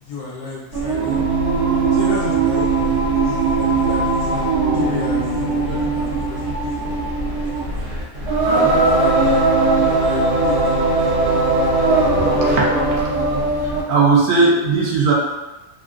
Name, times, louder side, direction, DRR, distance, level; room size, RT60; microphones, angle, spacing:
voice 1, 0.0-1.2 1.9-5.2 5.6-6.9 7.2-7.7 8.4-9.5 9.8-12.3, left 3 dB, 65° left, -4 dB, 1.1 m, -32 dB
Singing, 0.7-13.9, right 3 dB, 85° right, 1.6 m, -19 dB
voice 2, 13.9-15.1, right 4 dB, 70° right, -4 dB, 1.0 m, -16 dB
3.6 x 2.3 x 2.4 m, 1.1 s
omnidirectional pair, 1.6 m